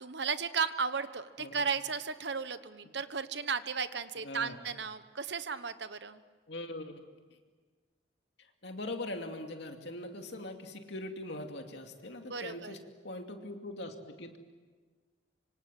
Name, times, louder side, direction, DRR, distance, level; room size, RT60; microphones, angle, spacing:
voice 1, 0.0-6.2 12.3-12.7, right 5 dB, 60° right, 12 dB, 1.1 m, -35 dB
voice 2, 4.2-4.6 6.5-7.0 8.4-14.4, left 1 dB, 60° left, 4 dB, 2.6 m, -41 dB
25.5 x 25.5 x 7.7 m, 1.4 s
head